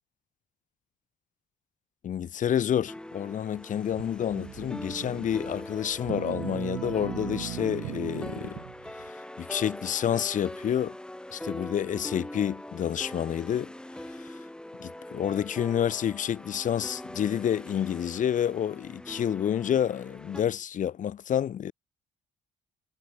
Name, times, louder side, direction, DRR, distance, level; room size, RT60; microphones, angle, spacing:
voice 1, 2.0-8.6 9.4-11.0 11.3-13.7 14.2-14.3 14.8-21.7, left 9 dB, 50° left, 2.0 m, -29 dB
sound 1, 2.9-20.4, left 1 dB, 5° left, 2.4 m, -42 dB
sound 2, 3.9-9.1, right 20 dB, 85° right, 1.0 m, -39 dB
cardioid pair, 110°, 17 cm